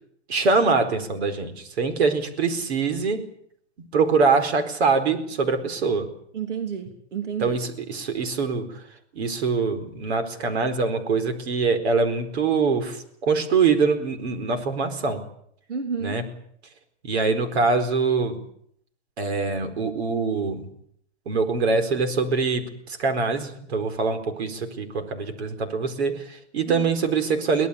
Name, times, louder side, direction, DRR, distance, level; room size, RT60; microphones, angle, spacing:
voice 1, 0.3-3.3 3.9-6.1 7.4-8.8 9.1-15.2 16.0-16.2 17.0-18.4 19.2-20.7 21.3-27.7, right 4 dB, 65° right, 8 dB, 4.6 m, -24 dB
voice 2, 6.3-7.6 15.7-16.2 26.7-26.9, right 6 dB, 90° right, 6 dB, 3.1 m, -31 dB
24.0 x 18.0 x 8.4 m, 0.69 s
hypercardioid pair, 160°, 35 cm